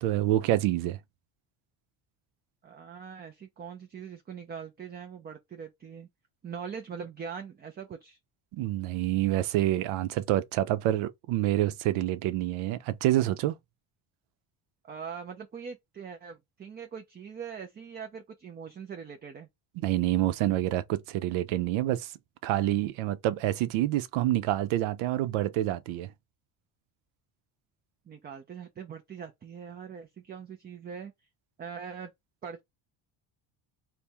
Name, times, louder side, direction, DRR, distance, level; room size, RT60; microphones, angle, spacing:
voice 1, 0.0-1.0 8.5-13.5 19.8-22.1 22.4-26.1, right 14 dB, 85° right, 0.6 m, -27 dB
voice 2, 2.6-6.1 6.4-8.2 14.8-19.5 28.1-31.1 31.6-32.1 32.4-32.6, right 6 dB, 20° right, 0.4 m, -42 dB
3.4 x 2.1 x 4.3 m
cardioid pair, 120°, 47 cm